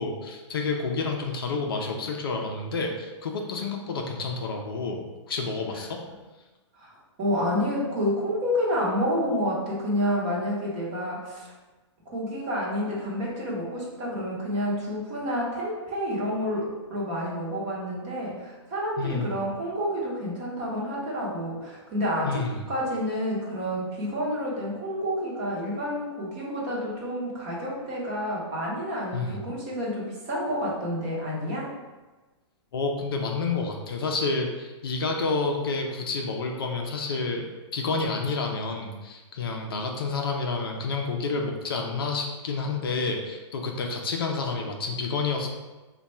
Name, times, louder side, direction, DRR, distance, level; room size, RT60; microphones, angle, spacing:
voice 1, 0.0-6.0 19.0-19.3 22.2-22.6 29.1-29.4 32.7-37.5 37.7-45.5, left 4 dB, 50° left, 2 dB, 0.5 m, -29 dB
voice 2, 6.8-11.5 12.1-31.7, equal, 20° right, -5 dB, 0.7 m, -29 dB
3.5 x 2.2 x 4.1 m, 1.2 s
hypercardioid pair, 175°, 15 cm